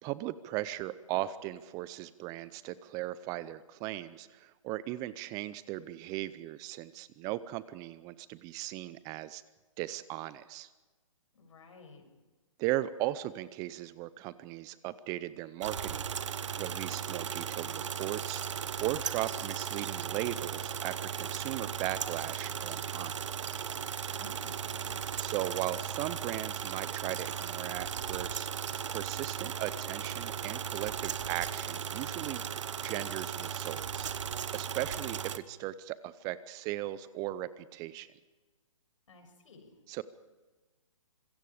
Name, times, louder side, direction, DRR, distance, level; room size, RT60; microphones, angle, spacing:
voice 1, 0.0-9.4 9.8-10.7 12.6-16.1 16.5-23.1 25.1-28.5 28.9-32.5 32.8-34.1 34.5-38.1 39.9-40.0, right 15 dB, 20° right, 17 dB, 0.6 m, -37 dB
voice 2, 11.3-12.0 24.2-25.0 39.1-39.7, left 3 dB, 70° left, 4 dB, 6.8 m, -53 dB
sound 1, 15.6-35.4, right 8 dB, 65° right, 1.3 m, -37 dB
26.5 x 22.5 x 5.0 m, 1.2 s
hypercardioid pair, 140°, 17 cm